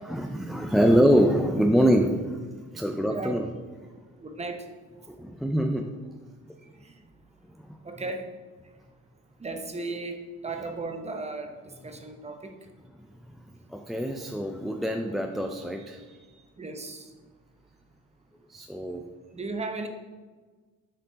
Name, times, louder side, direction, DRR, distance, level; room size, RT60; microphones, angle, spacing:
voice 1, 0.1-2.4 2.7-3.5 5.1-5.9 13.7-16.0 18.5-19.0, equal, ahead, 4 dB, 0.4 m, -24 dB
voice 2, 4.2-4.7 6.8-7.0 7.8-8.3 9.4-12.5 16.6-17.1 19.3-19.9, right 3 dB, 20° right, 5 dB, 0.8 m, -35 dB
6.4 x 4.4 x 3.9 m, 1.4 s
cardioid pair, 90°, 30 cm